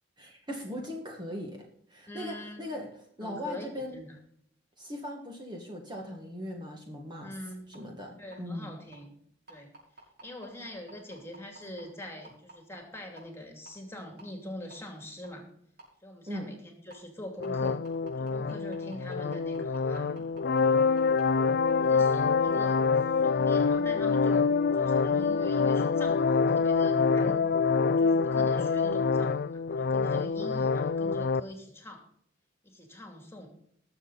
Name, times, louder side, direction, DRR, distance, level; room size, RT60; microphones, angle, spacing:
voice 1, 0.2-1.6 1.9-2.9 3.2-4.0 4.8-7.3 7.7-8.8 16.3-16.5, left 1 dB, 25° right, 1 dB, 1.7 m, -39 dB
voice 2, 2.1-2.7 3.2-4.1 7.2-7.6 8.2-9.1 9.5-9.7 10.2-15.5 16.0-16.6 16.8-17.9 18.2-20.3 21.8-24.5 24.7-27.4 27.8-32.1 32.6-33.5, left 1 dB, 15° left, 2 dB, 2.7 m, -43 dB
sound 1, 7.7-7.8 8.3-8.4 8.9-9.0 9.5-13.2 13.7-13.8 14.2-14.3 14.7-14.8 15.2-15.3 15.8-15.9 16.3-16.4 16.9-17.0 17.4-21.2 21.7-21.8, right 2 dB, 55° right, 5.8 m, -50 dB
sound 2, 17.4-31.4, left 5 dB, 55° left, 0.4 m, -26 dB
19.5 x 7.2 x 4.1 m, 0.67 s
head